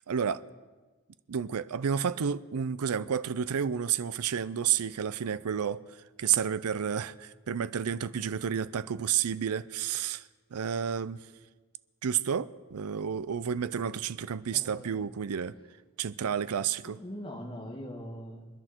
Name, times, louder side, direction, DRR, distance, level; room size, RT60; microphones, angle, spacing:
voice 1, 0.1-0.4 1.3-5.8 6.2-11.2 12.0-15.5 16.0-17.0, right 8 dB, 80° right, 0.5 m, -30 dB
voice 2, 14.5-15.1 16.8-18.5, equal, 25° left, 2.1 m, -42 dB
27.5 x 11.0 x 4.5 m
head